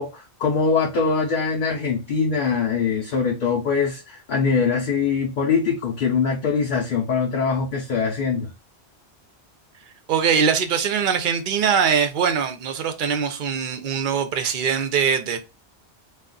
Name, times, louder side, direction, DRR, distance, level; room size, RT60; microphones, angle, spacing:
voice 1, 0.0-8.5, left 5 dB, 55° left, 0.7 m, -23 dB
voice 2, 10.1-15.4, right 7 dB, 55° right, 0.7 m, -22 dB
2.3 x 2.3 x 3.7 m
omnidirectional pair, 1.1 m